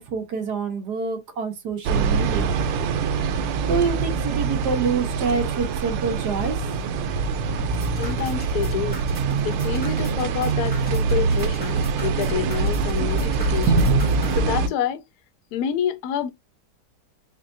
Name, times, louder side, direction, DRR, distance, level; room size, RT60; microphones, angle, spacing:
voice 1, 0.1-2.5 3.6-6.7, right 5 dB, 60° right, 1.3 m, -26 dB
sound 1, 1.9-14.7, right 4 dB, 85° right, 1.5 m, -24 dB
sound 2, 7.6-14.4, equal, 5° left, 0.9 m, -39 dB
voice 2, 8.0-9.0 9.4-13.9 14.4-15.0 15.5-16.3, left 9 dB, 70° left, 0.9 m, -28 dB
4.5 x 3.1 x 2.5 m
omnidirectional pair, 2.3 m